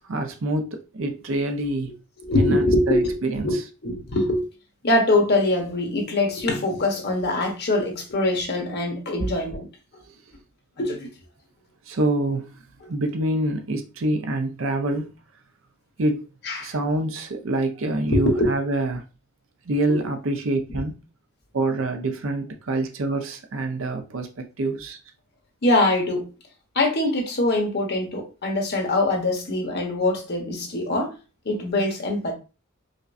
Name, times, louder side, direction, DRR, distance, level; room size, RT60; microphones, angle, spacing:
voice 1, 0.0-1.9 2.4-3.7 9.2-9.3 11.9-12.6 12.9-15.1 16.0-16.3 16.6-19.0 19.7-21.0 21.5-25.0, right 2 dB, 70° right, 0.6 m, -26 dB
voice 2, 2.2-3.2 3.4-4.4 4.8-9.7 10.8-11.1 12.8-12.9 16.4-16.7 18.1-18.5 19.9-20.0 20.7-20.8 25.6-26.3 26.7-31.1 31.4-32.3, left 2 dB, 55° left, 1.1 m, -23 dB
5.1 x 2.1 x 2.6 m
head